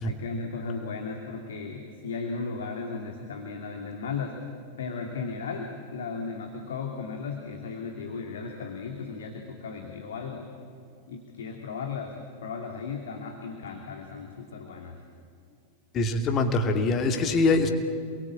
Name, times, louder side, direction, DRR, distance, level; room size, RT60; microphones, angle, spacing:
voice 1, 0.0-4.4 4.8-10.5 11.1-15.0, left 5 dB, 65° left, 3 dB, 2.6 m, -36 dB
voice 2, 15.9-17.7, left 3 dB, 30° left, 5 dB, 2.7 m, -23 dB
28.5 x 22.5 x 8.7 m, 2.3 s
figure-of-eight pair, 90°, 0 cm